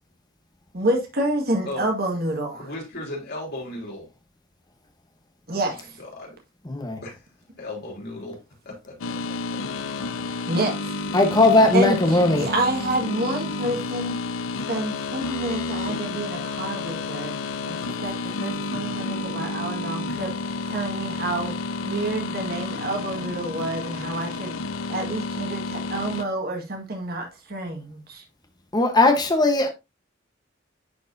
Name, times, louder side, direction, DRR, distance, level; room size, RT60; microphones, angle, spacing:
voice 1, 0.7-2.7 5.5-6.0 10.5-10.9 11.7-14.2 14.7-17.3 17.7-20.3 20.7-21.5 21.8-24.6 24.9-28.2, right 1 dB, 50° right, 1.8 m, -28 dB
voice 2, 2.6-4.1 5.5-5.7 6.0-6.4 7.0-7.2 7.6-8.4 8.6-9.6, left 2 dB, 55° left, 4.1 m, -36 dB
voice 3, 6.7-7.0 11.1-12.5 28.7-29.7, left 2 dB, 20° left, 1.1 m, -18 dB
sound 1, 9.0-26.2, left 3 dB, 85° left, 0.6 m, -30 dB
10.5 x 4.7 x 2.7 m
head